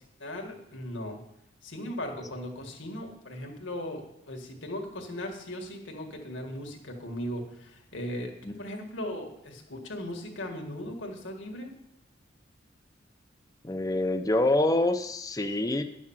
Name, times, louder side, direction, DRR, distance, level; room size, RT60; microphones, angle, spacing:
voice 1, 0.2-1.2 1.6-4.0 4.3-8.3 8.6-11.7, left 1 dB, 75° left, 2 dB, 2.0 m, -38 dB
voice 2, 13.6-15.8, left 2 dB, 20° left, 8 dB, 0.7 m, -26 dB
11.0 x 6.2 x 7.2 m, 0.81 s
head